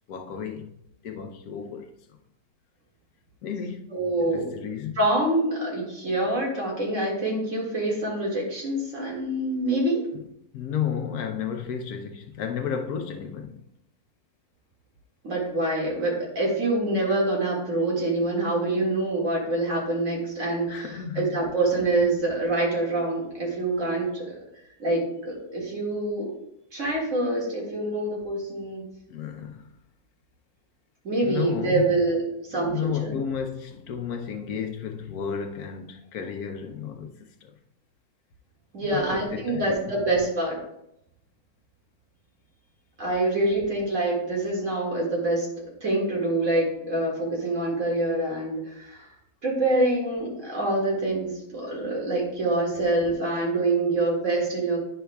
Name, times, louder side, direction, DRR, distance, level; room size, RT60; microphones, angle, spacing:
voice 1, 0.1-0.8 1.0-1.9 3.4-3.9 4.3-5.0 10.5-13.6 20.7-21.4 21.8-21.9 29.1-29.7 31.2-32.0 32.5-37.6 38.9-39.9, left 7 dB, 80° left, 1.2 m, -32 dB
voice 2, 3.9-4.5 5.0-10.0 15.2-24.4 24.8-26.3 26.7-28.9 31.0-32.2 32.5-33.2 38.7-40.6 43.0-45.5 45.8-49.1 49.4-54.8, right 2 dB, 55° right, 2.3 m, -26 dB
10.0 x 5.6 x 2.3 m
omnidirectional pair, 1.6 m